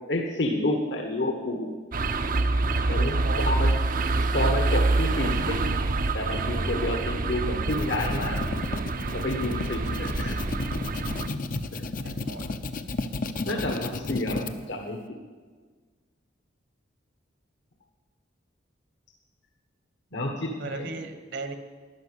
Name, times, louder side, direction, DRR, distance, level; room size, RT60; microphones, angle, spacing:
voice 1, 0.1-1.7 2.9-3.7 4.3-5.7 6.1-8.4 9.1-10.4 11.7-11.8 13.5-15.2 20.1-20.9, left 1 dB, 65° left, 2 dB, 1.4 m, -29 dB
sound 1, 1.9-11.3, right 2 dB, 45° right, 0.7 m, -26 dB
voice 2, 2.8-3.5 12.0-12.5 20.6-21.5, right 3 dB, 65° right, 7 dB, 1.4 m, -37 dB
sound 2, 7.5-14.5, left 2 dB, 45° left, 0.7 m, -33 dB
12.5 x 10.5 x 8.3 m, 1.5 s
head